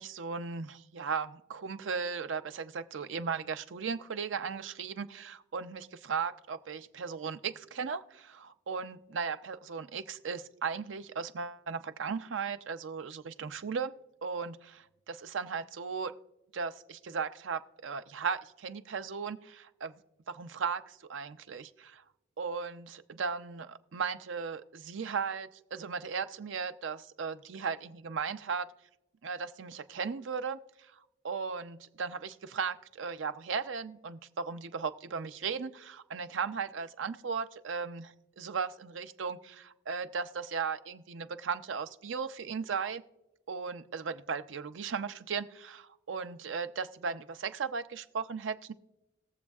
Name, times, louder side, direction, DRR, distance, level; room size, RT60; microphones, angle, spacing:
voice 1, 0.0-13.9 14.2-16.1 16.5-19.9 20.3-22.0 22.4-28.7 29.2-30.9 31.2-43.0 43.5-48.7, right 5 dB, 80° right, 11 dB, 0.5 m, -36 dB
21.0 x 7.3 x 2.4 m, 0.92 s
head